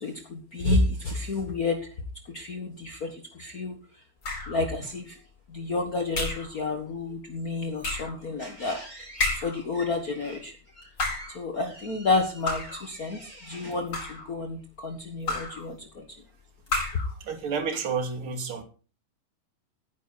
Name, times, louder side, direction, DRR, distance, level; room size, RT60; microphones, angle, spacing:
voice 1, 0.0-1.9 2.3-3.8 4.5-5.2 5.5-16.0, left 3 dB, 55° left, 5 dB, 0.9 m, -30 dB
sound 1, 4.2-4.6 6.1-6.5 7.8-8.2 9.2-9.7 10.8-11.4 12.5-12.9 13.7-14.3 15.3-15.7 16.7-17.1, left 2 dB, 35° left, 5.3 m, -30 dB
voice 2, 17.2-18.6, right 5 dB, 40° right, 7 dB, 2.9 m, -30 dB
16.5 x 10.0 x 4.1 m, 0.36 s
omnidirectional pair, 4.4 m